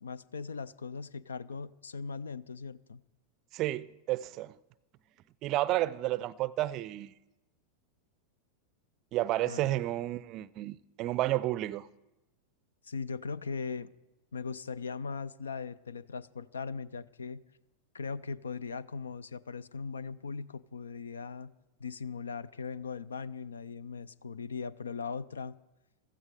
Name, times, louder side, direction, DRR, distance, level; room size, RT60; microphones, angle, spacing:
voice 1, 0.0-3.0 9.4-9.8 12.8-13.9 14.3-17.4 17.9-21.5 21.8-25.6, left 5 dB, 70° left, 0.4 m, -39 dB
voice 2, 3.5-4.5 5.4-7.1 9.1-11.9, right 15 dB, 40° right, 0.4 m, -31 dB
15.5 x 13.5 x 4.8 m
figure-of-eight pair, 90°, 0 cm